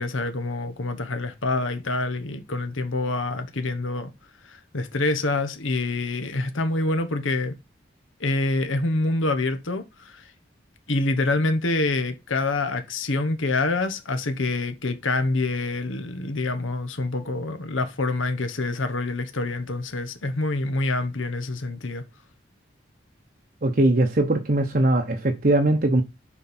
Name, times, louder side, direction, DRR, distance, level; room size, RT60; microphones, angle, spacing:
voice 1, 0.0-4.1 4.4-7.6 8.2-10.2 10.9-22.0, left 2 dB, 85° left, 1.2 m, -26 dB
voice 2, 23.6-26.0, right 1 dB, 45° right, 0.8 m, -20 dB
7.3 x 5.3 x 4.2 m
head